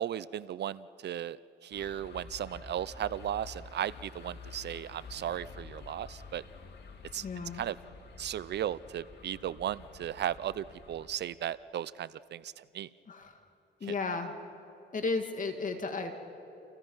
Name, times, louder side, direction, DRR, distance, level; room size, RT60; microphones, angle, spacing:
voice 1, 0.0-6.4 7.1-7.2 7.5-7.8 8.2-12.9 13.8-13.9, right 10 dB, 60° right, 18 dB, 0.5 m, -36 dB
sound 1, 1.7-11.1, left 4 dB, 55° left, 2.7 m, -49 dB
voice 2, 7.2-7.6 13.1-13.4 13.8-14.3 14.9-16.1, left 3 dB, 40° left, 5 dB, 2.1 m, -34 dB
29.5 x 28.5 x 5.6 m, 2.8 s
cardioid pair, 90°, 20 cm